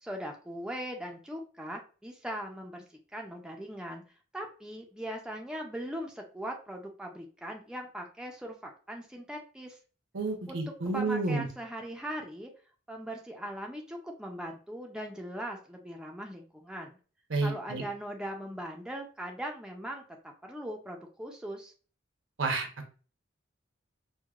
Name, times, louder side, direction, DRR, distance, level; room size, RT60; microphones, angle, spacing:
voice 1, 0.0-2.8 3.1-4.0 4.3-9.8 10.5-10.6 10.9-12.5 12.9-17.0 17.4-20.0 20.4-21.7, equal, 5° right, 1 dB, 0.4 m, -40 dB
voice 2, 10.1-11.5 17.3-17.8 22.4-22.9, right 3 dB, 75° right, 3 dB, 0.8 m, -30 dB
4.6 x 2.1 x 2.3 m, 0.38 s
head